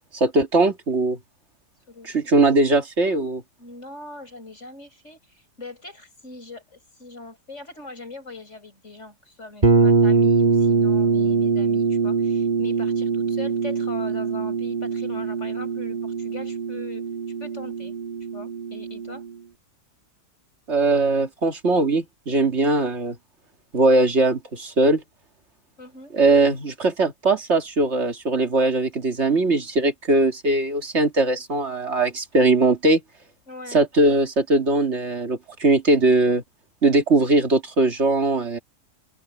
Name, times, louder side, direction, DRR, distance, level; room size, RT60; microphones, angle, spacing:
voice 1, 0.1-1.2 2.0-3.4 20.7-23.2 23.7-25.0 26.1-33.0 33.7-36.4 36.8-38.6, right 2 dB, 40° right, 2.5 m, -20 dB
voice 2, 1.9-2.2 3.6-17.1 17.4-17.9 18.3-19.2 25.8-26.1 33.5-33.8, left 2 dB, 45° left, 8.0 m, -41 dB
sound 1, 9.6-19.3, right 4 dB, 25° right, 2.8 m, -22 dB
omnidirectional pair, 1.7 m